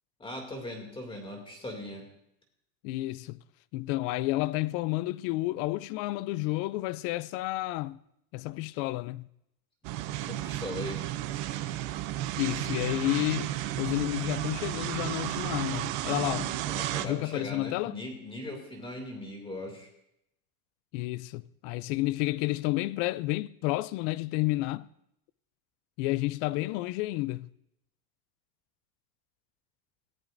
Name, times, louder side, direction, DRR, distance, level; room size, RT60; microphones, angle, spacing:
voice 1, 0.2-2.1 10.3-11.1 16.7-19.9, left 1 dB, 10° left, 2.5 m, -39 dB
voice 2, 2.8-3.4 3.7-8.0 8.3-9.3 12.4-13.5 13.8-16.6 17.0-18.0 20.9-24.9 26.0-27.5, left 19 dB, 55° left, 0.5 m, -30 dB
sound 1, 9.8-17.1, right 14 dB, 55° right, 0.8 m, -33 dB
20.5 x 14.5 x 2.6 m
supercardioid pair, 150°, 44 cm